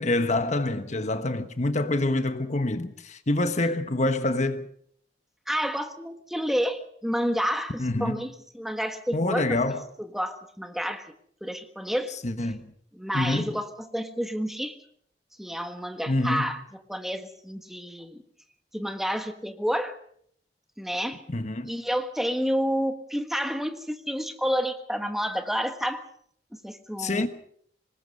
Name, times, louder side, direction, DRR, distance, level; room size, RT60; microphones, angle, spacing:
voice 1, 0.0-4.7 7.8-8.3 9.1-9.9 12.2-12.7 13.1-13.6 16.1-16.5 21.3-21.7 27.0-27.3, left 2 dB, 40° left, 1.3 m, -26 dB
voice 2, 5.5-9.6 10.1-11.1 11.4-12.1 12.9-14.8 15.4-16.6 16.9-18.2 18.7-20.0 20.8-21.2 21.7-26.0 26.5-27.3, equal, ahead, 1.5 m, -29 dB
25.5 x 20.5 x 5.5 m
head